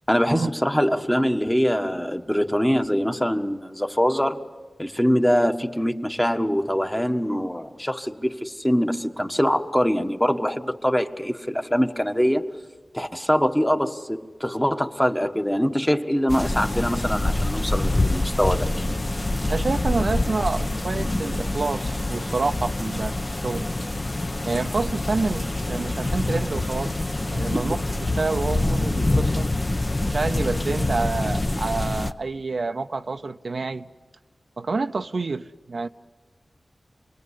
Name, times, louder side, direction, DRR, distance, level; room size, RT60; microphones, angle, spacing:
voice 1, 0.1-4.5 4.8-12.5 12.9-18.7 27.5-27.7, equal, 10° left, 1.4 m, -23 dB
sound 1, 16.3-32.1, left 2 dB, 35° left, 1.0 m, -25 dB
voice 2, 19.4-23.2 23.4-23.7 24.4-26.9 27.3-29.5 30.1-33.9 34.6-35.9, right 3 dB, 70° right, 0.7 m, -28 dB
28.0 x 21.0 x 8.4 m
wide cardioid pair, 70°, 0 cm